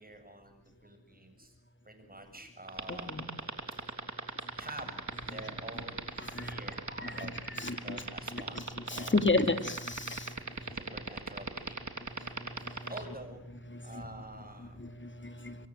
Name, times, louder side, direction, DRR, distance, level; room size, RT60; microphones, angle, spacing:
voice 1, 0.0-1.6 1.8-3.2 4.6-5.0 5.2-6.1 6.4-9.3 9.7-9.9 10.7-11.8 12.9-13.4 13.8-14.8, right 1 dB, 25° right, 6 dB, 7.4 m, -48 dB
sound 1, 2.7-13.0, right 4 dB, 50° right, 3.5 m, -36 dB
voice 2, 7.6-8.0 8.9-10.3 13.9-14.0 15.2-15.6, left 3 dB, 30° left, 8 dB, 2.6 m, -31 dB
26.5 x 23.0 x 7.8 m, 0.85 s
wide cardioid pair, 70°, 37 cm